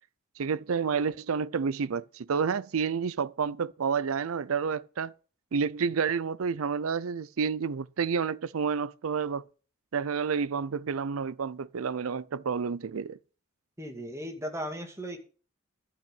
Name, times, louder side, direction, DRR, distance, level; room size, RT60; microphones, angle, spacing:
voice 1, 0.4-5.1 5.5-9.4 9.9-13.2, right 6 dB, 75° right, 0.5 m, -30 dB
voice 2, 13.8-15.2, equal, 15° right, 2.1 m, -36 dB
12.0 x 5.7 x 8.4 m
head